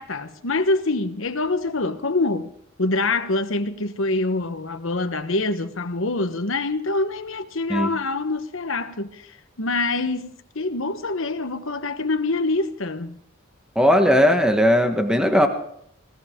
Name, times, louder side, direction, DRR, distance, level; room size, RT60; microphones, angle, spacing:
voice 1, 0.0-2.5 2.8-9.2 9.6-13.2, left 2 dB, 65° left, 1.2 m, -25 dB
voice 2, 13.7-15.5, equal, 5° right, 1.3 m, -17 dB
20.0 x 18.0 x 3.7 m
head